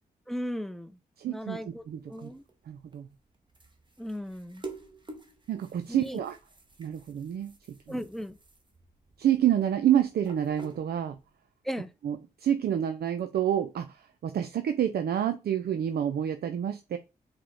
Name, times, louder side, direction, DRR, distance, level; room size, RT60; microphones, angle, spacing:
voice 1, 0.3-1.0 1.3-2.4 4.0-4.6 5.9-6.2 7.9-8.4 11.6-11.9, equal, ahead, 0.4 m, -36 dB
voice 2, 1.2-1.6 1.9-2.3 2.7-3.1 5.5-6.4 6.8-7.5 9.2-11.2 12.0-17.0, right 10 dB, 60° right, 0.4 m, -28 dB
sound 1, 1.7-11.3, right 3 dB, 25° right, 1.0 m, -50 dB
4.6 x 2.1 x 3.8 m
supercardioid pair, 45°, 18 cm